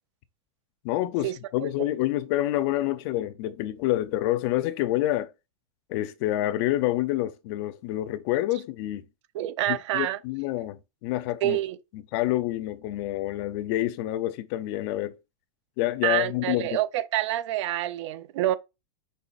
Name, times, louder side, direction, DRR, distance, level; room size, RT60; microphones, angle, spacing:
voice 1, 0.8-5.3 5.9-9.0 9.7-11.6 12.1-15.2 15.8-16.7, left 15 dB, 45° left, 0.6 m, -27 dB
voice 2, 9.3-10.2 11.4-11.8 16.0-18.6, right 14 dB, 60° right, 0.5 m, -27 dB
5.5 x 3.8 x 2.4 m
supercardioid pair, 145°, 17 cm